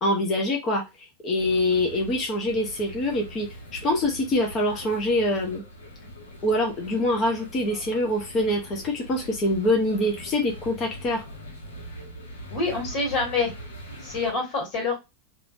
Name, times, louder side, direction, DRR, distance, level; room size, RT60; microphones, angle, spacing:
voice 1, 0.0-0.8 1.2-5.6 6.4-11.2, left 1 dB, 25° left, 0 dB, 0.9 m, -25 dB
sound 1, 1.4-14.3, equal, 75° left, 1.1 m, -42 dB
voice 2, 12.5-13.5 14.0-15.0, left 3 dB, 45° left, -3 dB, 2.0 m, -26 dB
3.3 x 2.6 x 2.6 m, 0.23 s
figure-of-eight pair, 90°, 0 cm